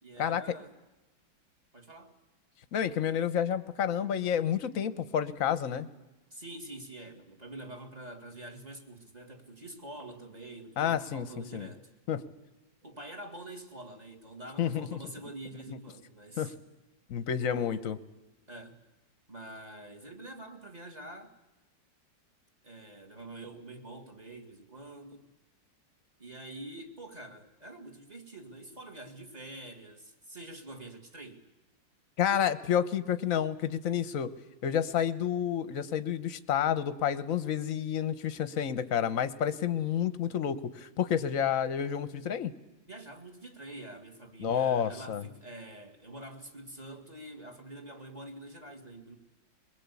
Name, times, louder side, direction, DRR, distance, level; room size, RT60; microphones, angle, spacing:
voice 1, 0.0-0.7 1.7-2.2 6.3-11.9 12.8-16.5 17.4-17.9 18.5-18.8 19.3-21.3 22.6-25.3 26.2-31.4 42.9-49.2, right 2 dB, 20° right, 2.1 m, -46 dB
voice 2, 2.7-5.9 10.8-11.3 11.5-11.7 12.1-12.2 14.6-15.0 16.4-16.5 17.1-18.0 32.2-34.3 34.6-42.5 44.4-45.2, left 9 dB, 50° left, 1.2 m, -29 dB
22.0 x 22.0 x 8.4 m
omnidirectional pair, 2.0 m